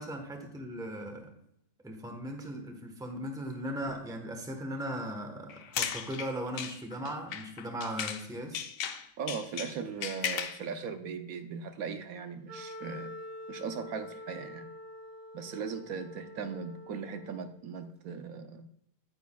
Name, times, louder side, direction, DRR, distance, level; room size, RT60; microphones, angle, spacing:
voice 1, 0.0-1.3 1.8-8.6, equal, 5° right, 4 dB, 0.9 m, -38 dB
sound 1, 5.5-8.3 8.5-10.6, left 8 dB, 70° left, 1.1 m, -36 dB
voice 2, 9.2-13.1 13.5-14.7 15.3-18.7, right 6 dB, 75° right, 8 dB, 1.1 m, -39 dB
Wind instrument woodwind instrument, 12.5-17.6, left 1 dB, 30° right, 2.1 m, -46 dB
9.3 x 9.2 x 2.3 m, 0.74 s
omnidirectional pair, 1.5 m